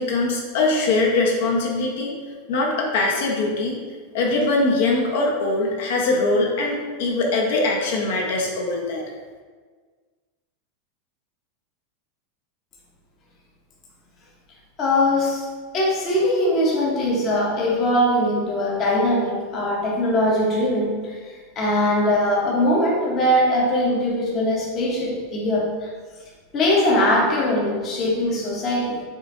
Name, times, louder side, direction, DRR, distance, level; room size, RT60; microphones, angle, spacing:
voice 1, 0.0-2.1 2.5-3.8 4.1-9.0, left 2 dB, 60° left, -1 dB, 0.7 m, -22 dB
voice 2, 14.8-15.4 15.7-21.1 21.6-25.9 26.5-29.0, left 1 dB, 25° left, -4 dB, 0.8 m, -21 dB
5.5 x 2.5 x 3.6 m, 1.5 s
supercardioid pair, 175°, 0 cm